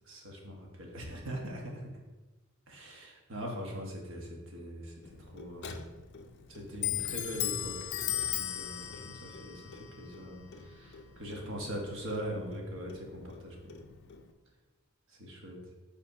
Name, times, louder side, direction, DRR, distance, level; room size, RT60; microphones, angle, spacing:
voice 1, 0.1-1.9 2.7-5.8 6.5-7.9 8.3-13.6 15.2-15.6, equal, 65° right, 0 dB, 1.3 m, -41 dB
Clock, 5.0-14.3, left 10 dB, 55° left, 0.5 m, -39 dB
5.5 x 3.4 x 5.5 m, 1.2 s
head